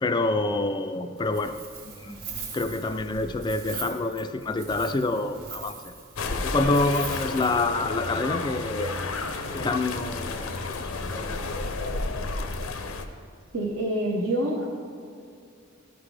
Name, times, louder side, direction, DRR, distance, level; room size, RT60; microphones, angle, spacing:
voice 1, 0.0-1.6 1.8-2.3 2.5-5.8 6.2-9.0 9.5-11.5, left 2 dB, 20° left, 9 dB, 0.3 m, -27 dB
Wind, 1.2-7.6, right 5 dB, 45° right, 1.6 m, -41 dB
sound 1, 6.2-13.0, left 3 dB, 85° left, 0.7 m, -31 dB
voice 2, 13.5-14.7, right 1 dB, 65° right, -3 dB, 1.0 m, -26 dB
13.5 x 5.8 x 3.3 m, 2.4 s
head